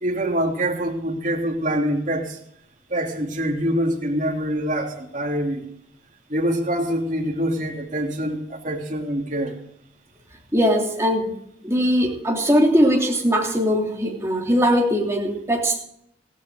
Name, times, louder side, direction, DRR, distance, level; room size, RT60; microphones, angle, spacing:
voice 1, 0.0-2.4 2.9-5.6 6.3-9.5, equal, 40° right, 0 dB, 3.3 m, -25 dB
voice 2, 10.5-11.3 11.6-15.8, equal, 15° right, -1 dB, 3.0 m, -20 dB
17.5 x 16.5 x 3.9 m, 0.72 s
head